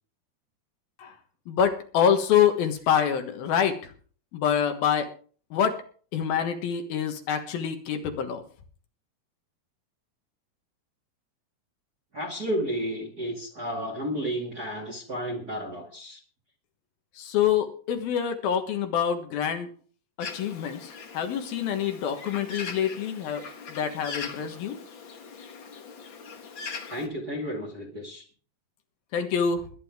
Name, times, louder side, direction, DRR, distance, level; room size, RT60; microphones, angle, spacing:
voice 1, 1.5-3.9 4.3-5.1 5.5-5.8 6.1-8.4 17.2-19.7 20.2-24.8 29.1-29.7, left 8 dB, 70° left, 6 dB, 3.1 m, -26 dB
voice 2, 12.1-16.2 26.9-28.2, equal, 30° right, 1 dB, 2.0 m, -32 dB
Bird, 20.2-27.1, left 5 dB, 55° left, 1.3 m, -41 dB
21.5 x 9.9 x 3.6 m, 0.42 s
omnidirectional pair, 4.6 m